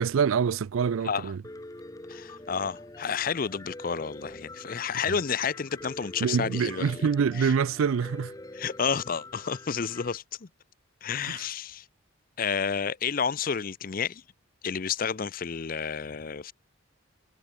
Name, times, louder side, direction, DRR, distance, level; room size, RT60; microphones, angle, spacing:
voice 1, 0.0-1.4 6.2-8.3 11.3-11.5, right 6 dB, 80° right, 0.4 m, -26 dB
Piano, 1.4-10.2, left 2 dB, 15° left, 0.9 m, -45 dB
voice 2, 2.1-7.0 7.4-7.5 8.5-10.5 11.0-11.9 12.4-14.2 14.6-16.5, left 6 dB, 40° left, 0.5 m, -30 dB
head